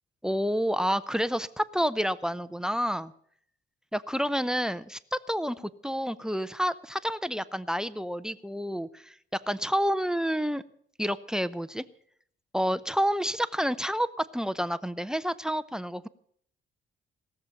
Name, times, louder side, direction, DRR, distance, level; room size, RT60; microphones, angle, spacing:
voice 1, 0.2-3.1 3.9-10.6 11.0-11.8 12.5-16.1, equal, 5° right, 17 dB, 0.6 m, -29 dB
18.0 x 6.9 x 9.0 m, 0.64 s
cardioid pair, 90°, 20 cm